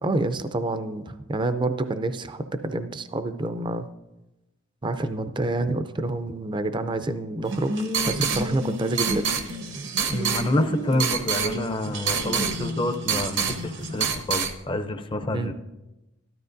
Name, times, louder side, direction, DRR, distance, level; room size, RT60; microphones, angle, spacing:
voice 1, 0.0-3.9 4.8-7.8 8.1-9.4 15.3-15.5, right 2 dB, 25° right, 10 dB, 0.4 m, -28 dB
sound 1, 7.5-14.5, right 4 dB, 65° right, 0.9 m, -27 dB
voice 2, 10.1-15.5, left 1 dB, 25° left, 7 dB, 0.5 m, -28 dB
13.5 x 12.0 x 2.6 m, 0.99 s
head